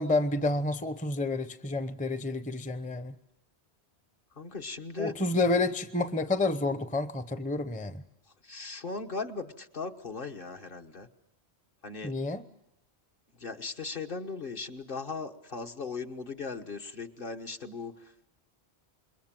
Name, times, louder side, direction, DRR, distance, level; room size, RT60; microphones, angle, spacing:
voice 1, 0.0-3.1 5.0-8.0 12.0-12.4, left 2 dB, 10° left, 11 dB, 0.7 m, -29 dB
voice 2, 4.3-5.1 8.4-11.1 11.8-12.1 13.4-18.1, left 4 dB, 55° left, 4 dB, 1.5 m, -38 dB
27.5 x 22.0 x 7.5 m, 0.85 s
omnidirectional pair, 1.1 m